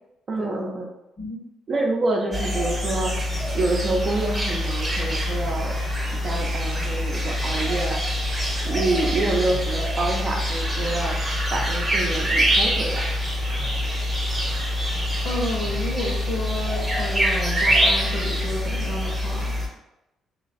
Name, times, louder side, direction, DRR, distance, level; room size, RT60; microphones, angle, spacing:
voice 1, 0.3-0.9 1.7-3.2 3.5-5.8 6.2-8.3 8.6-11.2 11.5-13.1, right 2 dB, 45° right, 0 dB, 0.6 m, -27 dB
sound 1, 2.3-19.7, equal, 20° right, 0.9 m, -25 dB
voice 2, 15.2-19.5, left 1 dB, 50° left, -4 dB, 0.8 m, -31 dB
3.0 x 2.3 x 2.5 m, 0.88 s
hypercardioid pair, 50°, 0 cm